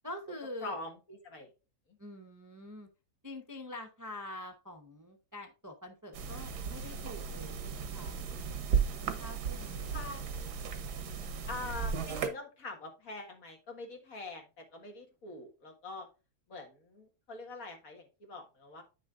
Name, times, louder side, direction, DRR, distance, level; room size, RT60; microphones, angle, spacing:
voice 1, 0.0-0.8 2.0-2.9 3.2-8.2 9.2-10.3 11.2-11.5, left 1 dB, 15° right, 4 dB, 0.6 m, -46 dB
voice 2, 0.6-1.5 9.9-10.2 11.5-16.1 16.5-18.8, left 2 dB, 60° left, 3 dB, 2.0 m, -44 dB
sound 1, 6.1-12.3, right 6 dB, 80° right, 1.6 m, -35 dB
9.4 x 6.3 x 2.4 m, 0.31 s
omnidirectional pair, 1.7 m